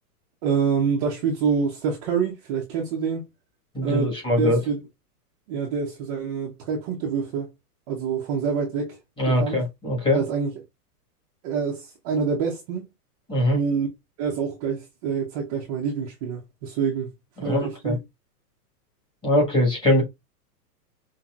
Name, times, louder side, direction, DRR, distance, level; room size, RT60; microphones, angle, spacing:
voice 1, 0.4-3.2 3.8-4.8 5.5-7.5 7.9-9.0 9.3-9.6 10.1-10.5 11.4-12.8 13.5-13.9 14.2-17.1 17.4-18.0, right 6 dB, 25° right, 0.6 m, -26 dB
voice 2, 3.7-4.6 9.2-10.2 13.3-13.6 17.4-18.0 19.2-20.0, left 1 dB, 10° left, 1.5 m, -22 dB
5.5 x 2.7 x 2.4 m
supercardioid pair, 160°, 47 cm